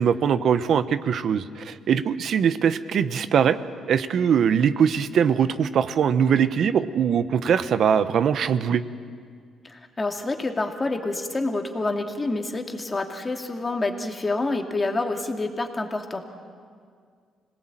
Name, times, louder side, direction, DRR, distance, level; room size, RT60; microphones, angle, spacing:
voice 1, 0.0-3.6 3.9-8.8, right 7 dB, 65° right, 13 dB, 1.0 m, -21 dB
voice 2, 9.6-16.2, left 2 dB, 25° left, 4 dB, 2.4 m, -28 dB
26.0 x 18.5 x 9.0 m, 2.1 s
cardioid pair, 90°, 0 cm